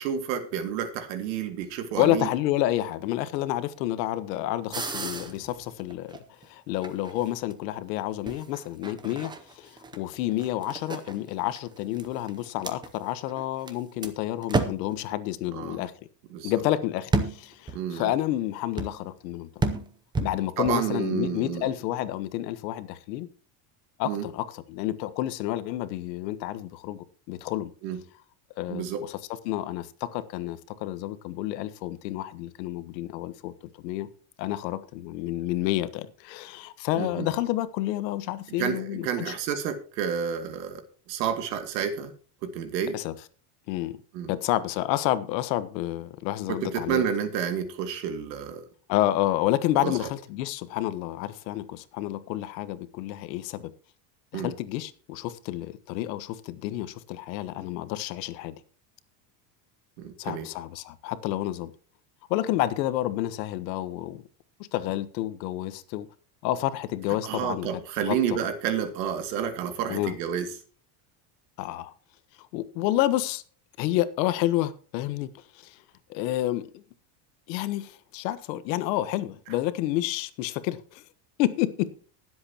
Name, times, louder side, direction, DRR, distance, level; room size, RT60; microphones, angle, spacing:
voice 1, 0.0-2.3 15.5-15.8 16.3-16.5 17.7-18.1 20.6-21.7 24.1-24.3 27.8-28.0 28.7-29.0 36.9-37.3 38.6-40.8 41.1-42.1 42.4-43.0 44.1-44.3 46.5-48.6 49.8-50.0 54.3-54.5 60.0-60.5 67.2-70.5, right 8 dB, 85° right, 2.4 m, -30 dB
voice 2, 2.0-6.2 6.4-15.9 16.4-19.5 20.2-23.3 24.0-27.7 28.6-29.2 29.4-33.5 33.8-34.1 34.4-39.3 42.9-43.1 43.7-44.0 44.3-47.0 48.9-53.7 54.3-58.5 60.2-61.7 62.3-64.2 64.7-66.1 66.4-67.7 68.0-68.4 69.9-70.2 71.6-71.9 72.5-73.4 73.8-75.8 76.1-76.8 77.5-81.0 81.4-81.9, left 14 dB, 85° left, 1.3 m, -29 dB
sound 1, 4.7-6.5 6.8-7.5 8.3-13.7 14.0-14.1 14.4-15.0 17.1-17.8 18.8-19.1 19.6-20.8, right 3 dB, 10° right, 0.6 m, -32 dB
20.5 x 7.9 x 2.9 m
cardioid pair, 170°, 49 cm